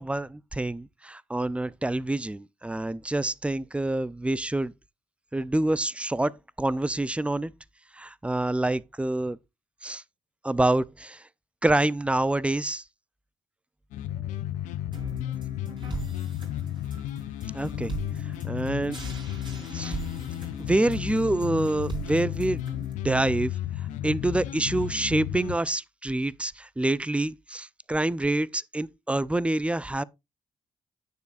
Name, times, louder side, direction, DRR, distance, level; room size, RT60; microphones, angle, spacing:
voice 1, 0.0-4.7 5.3-6.3 6.6-7.5 8.0-9.4 9.8-10.0 10.4-11.2 11.6-12.8 17.5-17.9 18.4-19.0 19.7-20.0 20.6-22.6 23.0-23.5 24.0-30.0, right 2 dB, 10° right, 0.5 m, -26 dB
sound 1, 13.9-25.6, left 12 dB, 80° left, 0.5 m, -33 dB
voice 2, 14.0-16.3, right 4 dB, 65° right, 2.2 m, -62 dB
sound 2, 14.9-22.9, right 4 dB, 35° right, 4.1 m, -41 dB
9.5 x 6.7 x 2.5 m
hypercardioid pair, 45°, 13 cm